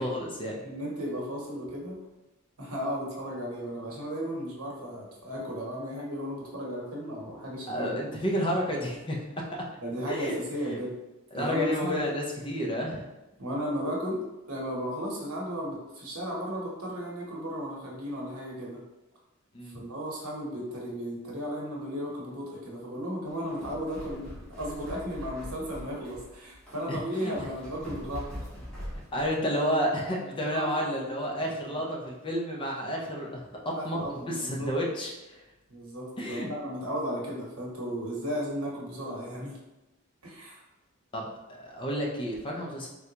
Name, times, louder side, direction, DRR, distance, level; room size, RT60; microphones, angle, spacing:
voice 1, 0.0-0.6 7.7-9.4 10.1-10.4 10.7-10.8 11.3-13.1 19.5-19.8 26.9-27.3 29.1-35.4 36.2-36.5 41.1-42.9, equal, 25° left, -2 dB, 0.4 m, -31 dB
voice 2, 0.6-2.0 2.6-8.0 9.8-11.0 11.3-12.0 13.4-14.2 14.5-18.8 19.7-24.2 24.6-28.4 30.5-30.7 32.9-33.0 33.7-34.7 35.7-39.5 40.2-40.6, equal, 75° right, -3 dB, 0.9 m, -35 dB
sound 1, 23.3-29.4, equal, 5° left, 1.0 m, -42 dB
3.7 x 2.2 x 2.8 m, 1.0 s
head